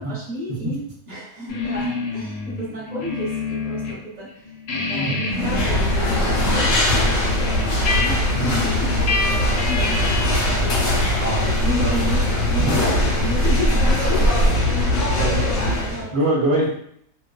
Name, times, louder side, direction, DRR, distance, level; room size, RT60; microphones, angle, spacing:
voice 1, 0.0-4.4 4.7-11.2 11.6-15.4 15.7-16.1, equal, 35° right, -6 dB, 0.8 m, -32 dB
sound 1, 1.5-4.0 4.3-10.5, left 3 dB, 80° left, 1.1 m, -28 dB
sound 2, 5.3-16.0, left 1 dB, 60° left, 0.9 m, -20 dB
voice 2, 11.2-11.5 11.8-12.1 12.6-12.8 15.2-15.4 15.8-16.7, right 1 dB, 60° right, -4 dB, 0.7 m, -24 dB
2.5 x 2.2 x 2.3 m, 0.68 s
omnidirectional pair, 1.7 m